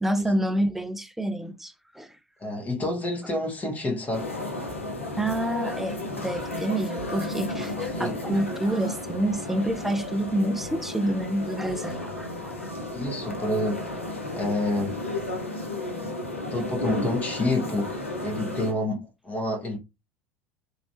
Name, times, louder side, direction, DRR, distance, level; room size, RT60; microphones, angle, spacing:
voice 1, 0.0-2.1 5.2-12.7, right 1 dB, 5° right, 0.5 m, -28 dB
voice 2, 2.4-4.3 7.8-8.2 12.9-13.9 14.3-15.0 16.0-16.1 16.5-17.9 18.2-19.8, left 1 dB, 25° left, 1.4 m, -28 dB
sound 1, 4.1-18.7, left 2 dB, 90° left, 0.7 m, -33 dB
3.0 x 2.8 x 3.0 m
figure-of-eight pair, 70°, 7 cm